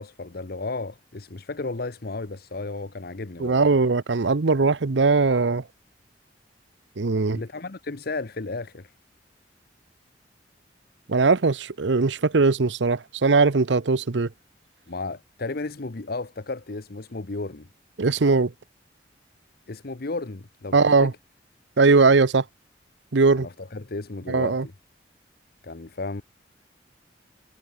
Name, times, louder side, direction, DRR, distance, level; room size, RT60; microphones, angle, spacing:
voice 1, 0.0-3.6 7.3-8.9 14.9-17.7 19.7-21.1 23.3-24.6 25.6-26.2, left 3 dB, 55° left, 1.0 m, -33 dB
voice 2, 3.4-5.6 7.0-7.4 11.1-14.3 18.0-18.5 20.7-21.1 21.8-22.4 23.1-23.5 24.3-24.7, right 4 dB, 85° right, 0.8 m, -20 dB
head